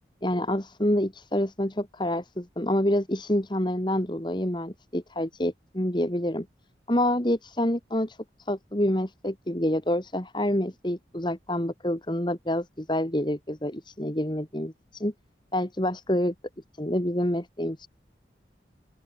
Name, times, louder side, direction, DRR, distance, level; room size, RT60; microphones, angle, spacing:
voice 1, 0.2-6.5 6.9-8.2 8.5-15.1 15.5-16.3 16.8-17.9, left 1 dB, 25° left, 2.3 m, -27 dB
open air
head